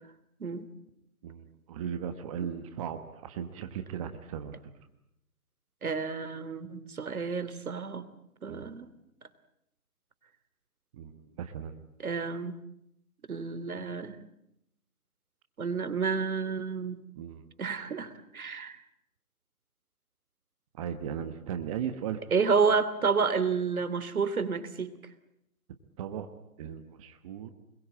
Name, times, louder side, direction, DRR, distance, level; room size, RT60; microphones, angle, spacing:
voice 1, 1.2-4.6 8.5-8.7 10.9-11.8 17.2-17.5 20.7-22.2 26.0-26.3 26.6-27.5, right 8 dB, 25° right, 8 dB, 1.3 m, -37 dB
voice 2, 5.8-8.0 8.4-8.9 12.0-12.5 13.3-14.2 15.6-17.0 17.6-18.8 22.3-24.9, right 5 dB, 70° right, 13 dB, 3.0 m, -30 dB
25.5 x 22.0 x 8.9 m, 0.80 s
hypercardioid pair, 155°, 44 cm